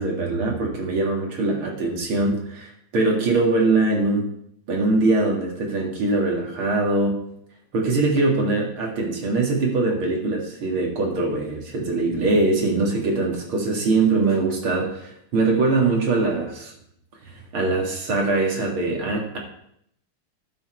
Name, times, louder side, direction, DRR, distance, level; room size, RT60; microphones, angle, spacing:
voice 1, 0.0-4.3 4.7-7.2 7.7-16.7 17.5-19.4, right 3 dB, 75° right, -1 dB, 2.9 m, -22 dB
11.5 x 6.3 x 4.5 m, 0.72 s
omnidirectional pair, 2.3 m